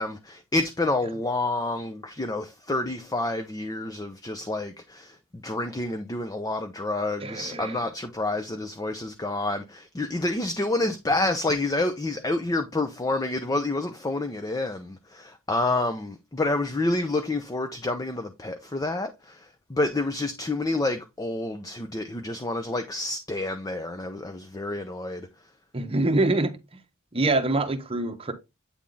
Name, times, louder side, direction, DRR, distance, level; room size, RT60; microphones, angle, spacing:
voice 1, 0.0-25.3, left 2 dB, 15° left, 0.5 m, -28 dB
voice 2, 7.2-7.8 25.7-26.6 27.1-28.3, right 2 dB, 25° right, 0.8 m, -25 dB
8.5 x 3.5 x 3.8 m
head